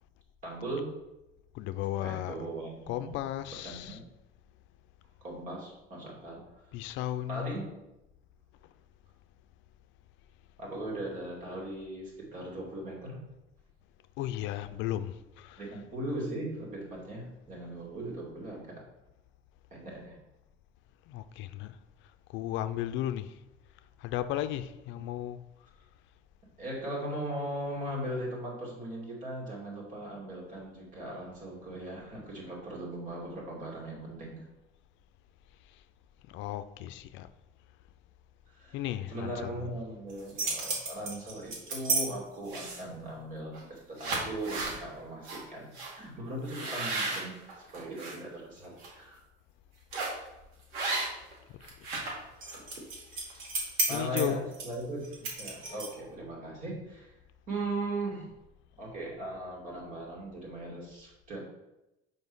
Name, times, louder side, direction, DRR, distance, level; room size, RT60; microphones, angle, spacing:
voice 1, 0.4-0.9 2.0-3.2 3.6-4.0 5.2-6.5 7.3-7.7 10.6-13.3 15.6-18.9 19.7-20.2 26.6-34.4 38.5-38.8 39.1-49.2 53.9-57.1 57.5-58.3 58.8-61.4, right 1 dB, 40° right, 2.4 m, -38 dB
voice 2, 1.5-2.5 2.9-4.0 6.7-7.5 14.2-15.8 21.1-21.8 22.3-23.4 24.0-25.4 35.6-35.8 36.3-37.3 38.7-39.7 50.9-51.2 53.1-53.5 53.9-54.4, left 13 dB, 70° left, 0.5 m, -35 dB
sound 1, 40.1-42.0 42.5-42.9 43.5-43.7 44.0-44.8 45.2-45.4 45.7-45.9 46.5-48.1 48.6-48.9 49.9-50.2 50.7-51.3 51.6-56.1, right 3 dB, 80° right, 2.3 m, -33 dB
6.2 x 5.3 x 5.4 m
cardioid pair, 165°, 20 cm